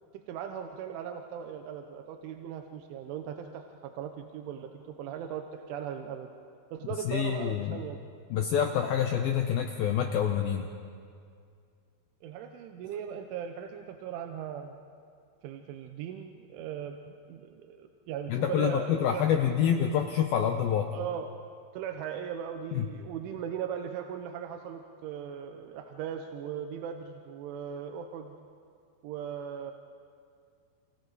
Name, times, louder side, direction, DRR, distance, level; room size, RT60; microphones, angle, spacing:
voice 1, 0.1-6.3 6.7-8.0 12.2-14.8 15.4-19.5 20.9-21.3 21.7-28.3 29.0-29.7, right 8 dB, 85° right, 5 dB, 3.3 m, -38 dB
voice 2, 7.1-7.8 8.3-10.7 18.3-20.9 22.8-22.9, left 9 dB, 80° left, 4 dB, 2.2 m, -27 dB
29.0 x 28.5 x 4.1 m, 2.3 s
omnidirectional pair, 5.4 m